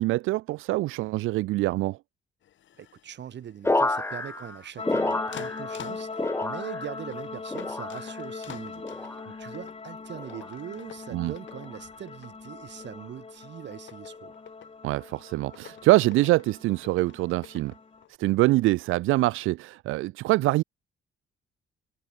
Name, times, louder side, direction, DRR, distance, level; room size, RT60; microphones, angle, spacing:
voice 1, 0.0-2.0 11.1-11.3 14.8-17.7 18.2-20.6, right 18 dB, 85° right, 0.5 m, -24 dB
sound 1, 2.4-18.2, left 11 dB, 70° left, 3.8 m, -50 dB
voice 2, 2.8-14.4, right 9 dB, 60° right, 4.7 m, -42 dB
sound 2, 3.6-5.9 6.1-7.0 7.5-8.2 8.8-9.3 10.2-10.5 11.5-11.8, left 2 dB, 10° left, 2.1 m, -30 dB
sound 3, 4.8-18.0, left 4 dB, 30° left, 6.4 m, -40 dB
cardioid pair, 90°, 20 cm